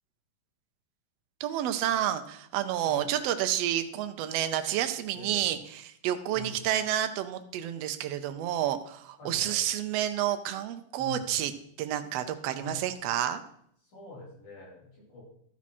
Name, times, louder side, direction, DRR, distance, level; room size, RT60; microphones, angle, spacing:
voice 1, 1.4-5.6 5.8-11.5 11.8-13.4, right 11 dB, 85° right, 8 dB, 1.4 m, -30 dB
voice 2, 5.1-5.4 6.3-6.7 9.2-9.6 11.0-11.3 12.6-12.8 13.8-15.2, left 3 dB, 65° left, -6 dB, 5.7 m, -44 dB
13.5 x 6.1 x 4.2 m, 0.68 s
omnidirectional pair, 3.8 m